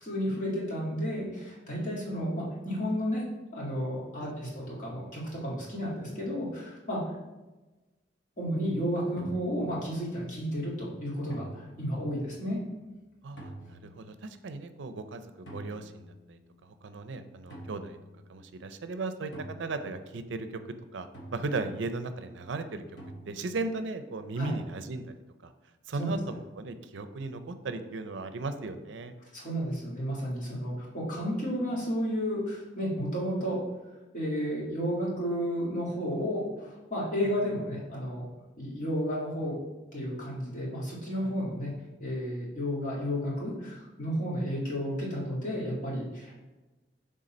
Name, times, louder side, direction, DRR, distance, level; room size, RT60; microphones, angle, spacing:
voice 1, 0.0-3.2 3.5-7.0 8.4-12.6 24.4-24.5 26.0-26.1 29.2-33.6 34.1-38.2 38.6-39.6 39.9-41.7 42.0-46.3, equal, 40° left, -5 dB, 1.9 m, -32 dB
voice 2, 4.2-4.5 13.2-18.0 18.3-19.3 19.6-20.6 20.9-22.8 23.3-25.1 25.4-25.5 25.9-29.2, right 3 dB, 85° right, 9 dB, 0.5 m, -37 dB
sound 1, 9.2-10.1 11.3-12.3 13.4-14.1 15.5-16.7 17.5-18.6 19.3-20.5 21.1-22.1 23.0-23.8, right 1 dB, 85° left, 1.2 m, -47 dB
6.5 x 3.7 x 4.2 m, 1.1 s
head